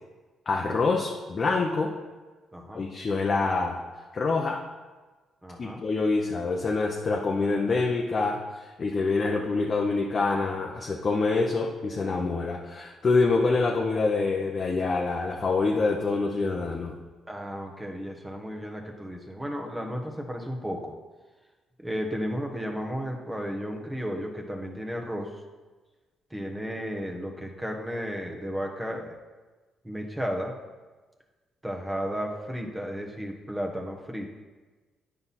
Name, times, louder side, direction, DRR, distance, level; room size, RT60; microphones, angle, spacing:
voice 1, 0.5-1.9 2.7-3.8 4.1-4.6 5.6-17.0, left 3 dB, 40° left, 0 dB, 0.8 m, -26 dB
voice 2, 2.5-2.8 5.4-5.8 17.3-21.0 21.8-25.4 26.3-29.2 29.8-30.6 31.6-34.3, equal, 10° right, 2 dB, 1.1 m, -33 dB
8.9 x 5.6 x 4.2 m, 1.3 s
cardioid pair, 90°, 0 cm